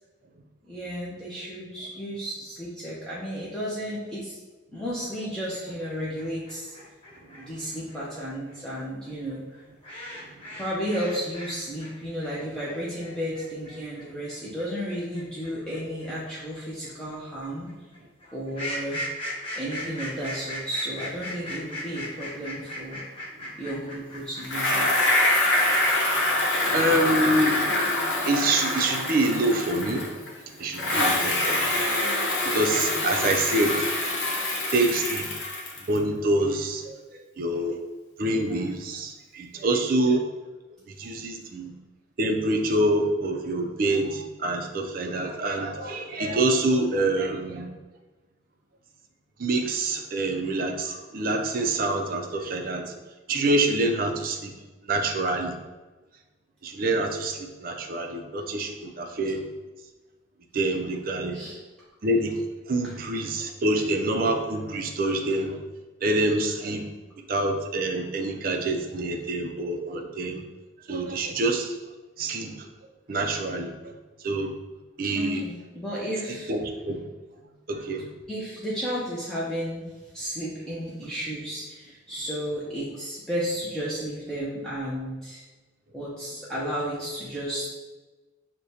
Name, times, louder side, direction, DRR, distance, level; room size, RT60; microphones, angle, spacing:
voice 1, 0.7-4.4 4.7-6.7 7.4-9.4 10.6-17.7 18.3-19.0 19.6-23.0 23.6-25.1 61.3-61.6 75.2-76.5 78.3-85.4 85.9-87.7, equal, 5° left, -8 dB, 0.5 m, -33 dB
sound 1, 5.5-11.5 11.8-24.7, left 1 dB, 25° left, 0.9 m, -38 dB
Bicycle, 24.4-30.3 30.7-36.0, left 1 dB, 65° left, 0.8 m, -25 dB
voice 2, 26.7-27.9 28.3-30.2 30.6-31.7 32.4-33.9 34.7-35.3 35.9-37.8 38.2-40.2 41.0-41.7 42.2-47.7 49.4-52.9 53.3-54.5 54.9-55.5 56.6-59.5 60.5-61.4 62.0-62.4 62.7-65.6 66.0-66.9 67.3-70.4 70.9-71.7 72.2-72.7 73.1-73.9 74.2-74.5 75.0-75.4 76.5-77.0 77.7-78.1, right 2 dB, 45° right, 3 dB, 0.4 m, -26 dB
6.2 x 2.1 x 2.7 m, 1.2 s
head